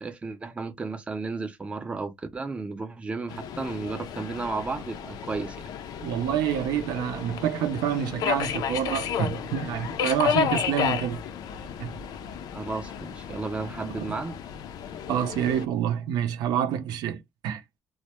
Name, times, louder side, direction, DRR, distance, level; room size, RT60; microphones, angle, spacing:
voice 1, 0.0-5.6 12.5-14.4, right 3 dB, 15° right, 0.4 m, -33 dB
Subway metro underground, 3.3-15.7, left 8 dB, 75° left, 0.4 m, -32 dB
voice 2, 6.0-11.2 11.8-12.0 15.1-17.6, right 9 dB, 85° right, 0.5 m, -27 dB
2.1 x 2.0 x 2.9 m
cardioid pair, 135°, 7 cm